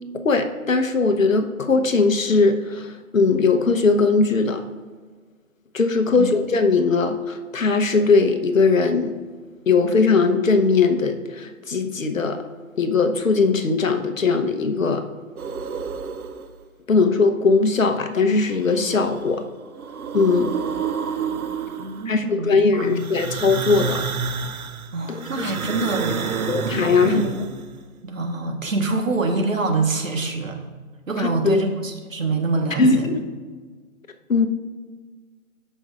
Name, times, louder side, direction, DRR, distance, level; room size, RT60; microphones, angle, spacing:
voice 1, 0.2-4.6 5.7-9.1 9.7-12.4 12.8-15.0 16.9-19.4 20.1-20.5 22.1-24.0 25.1-25.5 26.5-27.2 31.2-31.6 32.8-33.3 34.3-34.5, left 4 dB, 70° left, 6 dB, 1.0 m, -19 dB
sound 1, 15.4-16.6 18.4-19.3 19.6-22.2 22.9-27.8, right 6 dB, 90° right, 0.7 m, -29 dB
voice 2, 21.8-23.0 24.9-26.2 27.0-27.4 28.0-30.6 31.1-33.1, right 3 dB, 65° right, 5 dB, 1.3 m, -25 dB
14.0 x 5.4 x 2.4 m, 1.5 s
hypercardioid pair, 175°, 42 cm